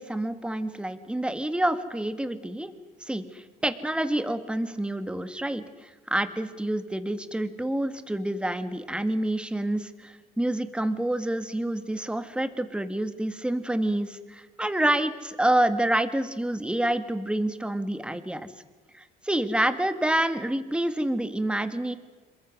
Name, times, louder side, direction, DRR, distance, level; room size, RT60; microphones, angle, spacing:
voice 1, 0.0-2.7 3.0-18.5 18.9-21.9, right 1 dB, 5° right, 10 dB, 2.0 m, -28 dB
27.0 x 23.5 x 6.3 m, 1.3 s
cardioid pair, 110°, 17 cm